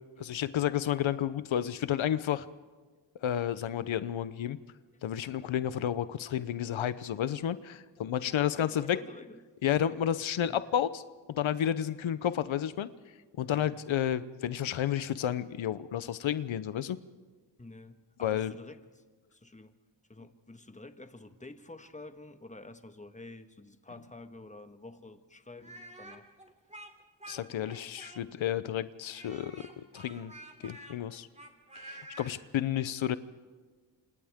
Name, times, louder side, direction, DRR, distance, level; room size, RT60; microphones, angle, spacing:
voice 1, 0.2-2.5 3.2-4.6 5.0-9.0 9.6-11.0 11.3-12.9 13.4-17.0 18.2-18.5 27.3-30.3 30.6-31.3 31.8-33.2, left 10 dB, 90° left, 14 dB, 0.8 m, -31 dB
voice 2, 8.2-9.4 10.4-10.6 13.5-13.8 17.6-19.0 19.3-19.7 20.1-26.3, left 2 dB, 15° left, 8 dB, 1.5 m, -49 dB
Speech, 25.6-28.5 29.1-32.3, right 1 dB, 15° right, 2.9 m, -49 dB
28.0 x 26.5 x 3.6 m, 1.4 s
cardioid pair, 75°, 46 cm